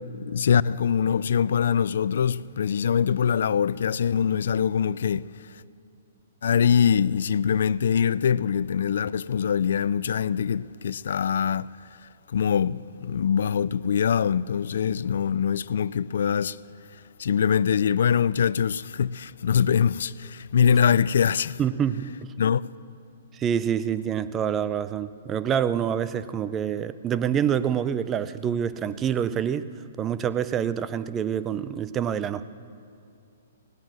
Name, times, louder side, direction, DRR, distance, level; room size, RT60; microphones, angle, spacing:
voice 1, 0.1-5.2 6.4-11.7 12.3-16.6 17.2-21.6 22.4-22.6, left 7 dB, 70° left, 0.3 m, -23 dB
voice 2, 21.6-22.3 23.3-29.7 30.0-32.4, right 8 dB, 20° right, 0.5 m, -26 dB
17.5 x 9.4 x 7.4 m
hypercardioid pair, 140°, 0 cm